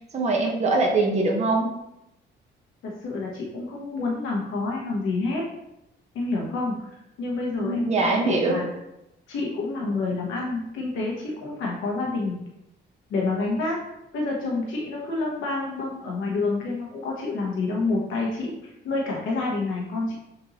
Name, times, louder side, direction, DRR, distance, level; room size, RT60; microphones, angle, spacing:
voice 1, 0.1-1.7 7.6-8.6, right 3 dB, 35° right, 0 dB, 1.0 m, -22 dB
voice 2, 2.8-5.4 6.1-8.7 9.3-12.4 13.1-13.8 14.1-20.1, left 3 dB, 80° left, -2 dB, 1.0 m, -28 dB
6.6 x 2.7 x 2.9 m, 0.86 s
cardioid pair, 90°, 20 cm